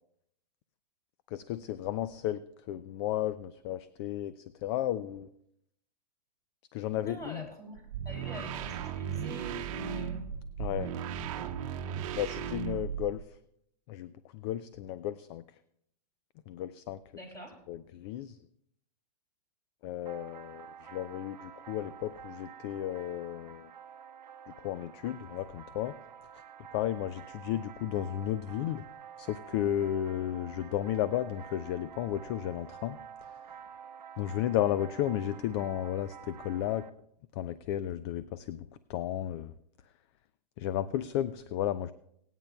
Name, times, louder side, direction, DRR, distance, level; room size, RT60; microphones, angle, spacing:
voice 1, 1.3-2.4 2.7-5.3 6.7-7.5 10.6-10.9 12.1-13.2 13.9-15.4 16.5-17.0 17.7-18.4 19.8-23.7 24.6-25.9 26.7-28.8 29.2-33.0 34.2-36.8 37.3-39.5 40.6-41.9, left 12 dB, 40° left, 15 dB, 0.4 m, -33 dB
voice 2, 7.0-10.3 17.1-17.5, left 1 dB, 15° left, 2 dB, 3.1 m, -44 dB
sound 1, 7.8-13.3, right 9 dB, 50° right, 0.9 m, -36 dB
sound 2, 20.1-36.9, right 8 dB, 85° right, 0.7 m, -49 dB
25.5 x 9.0 x 2.3 m, 0.72 s
hypercardioid pair, 125°, 21 cm